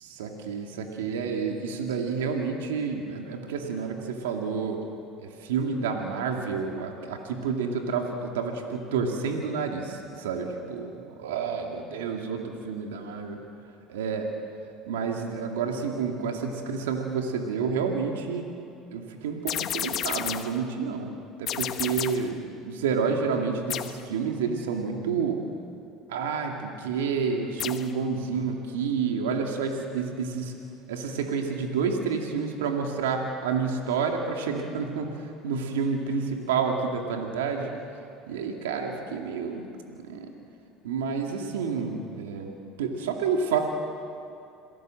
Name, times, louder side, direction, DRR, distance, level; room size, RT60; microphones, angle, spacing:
voice 1, 0.0-4.8 5.2-10.9 11.2-13.4 13.9-14.2 14.9-18.5 18.9-21.1 21.4-25.4 26.1-30.5 30.9-38.0 38.3-40.3 40.8-42.5 42.8-43.6, right 5 dB, 90° right, 2 dB, 2.4 m, -29 dB
sound 1, 19.5-20.6 21.5-22.3 23.7-24.1 27.6-28.0, left 10 dB, 55° left, 1.1 m, -32 dB
27.5 x 17.5 x 7.8 m, 2.7 s
supercardioid pair, 85°, 0 cm